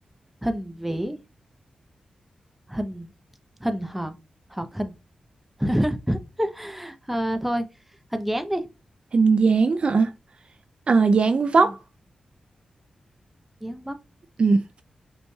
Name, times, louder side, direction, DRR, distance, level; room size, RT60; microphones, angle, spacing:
voice 1, 0.4-1.2 2.7-3.1 3.6-4.1 4.5-4.9 5.6-7.6 8.1-8.6 11.6-11.7 13.6-14.0, equal, 5° right, 0.6 m, -27 dB
voice 2, 9.1-10.1 10.9-11.8 14.4-14.8, right 4 dB, 50° right, 0.3 m, -19 dB
5.1 x 3.2 x 2.2 m
cardioid pair, 75°, 2 cm